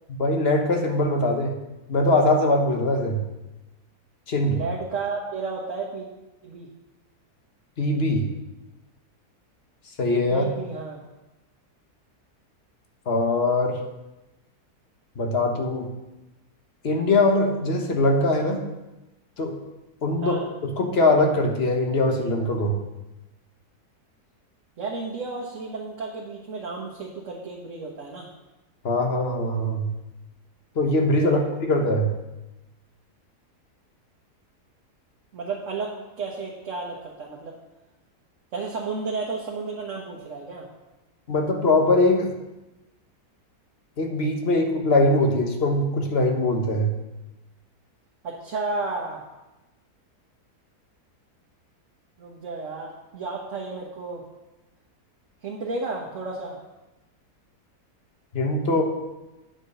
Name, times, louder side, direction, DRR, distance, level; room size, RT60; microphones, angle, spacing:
voice 1, 0.2-1.5 1.9-3.2 4.3-4.6 7.8-8.3 10.0-10.5 13.1-13.8 15.2-15.9 16.8-18.6 19.4-19.5 20.0-22.8 28.8-29.9 30.7-32.1 41.3-42.3 44.0-46.9 58.3-58.8, left 2 dB, 45° left, 3 dB, 1.3 m, -22 dB
voice 2, 4.5-6.1 6.4-6.7 10.3-11.0 20.2-20.5 24.8-28.3 31.2-31.5 35.3-37.6 38.5-40.7 48.2-49.2 52.2-54.2 55.4-56.6, right 3 dB, 55° right, -2 dB, 1.4 m, -32 dB
9.5 x 5.1 x 6.7 m, 1.0 s
omnidirectional pair, 1.7 m